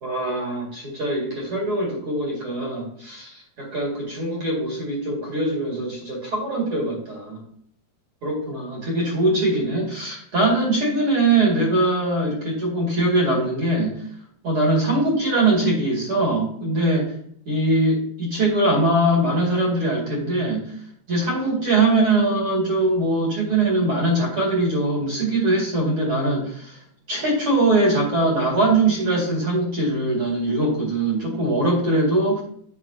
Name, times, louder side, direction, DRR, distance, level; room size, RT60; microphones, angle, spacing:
voice 1, 0.0-7.4 8.2-14.0 14.4-17.1 17.5-20.7 21.1-26.8 27.1-32.4, right 2 dB, 40° right, -4 dB, 2.6 m, -22 dB
8.6 x 6.4 x 2.8 m, 0.64 s
omnidirectional pair, 4.6 m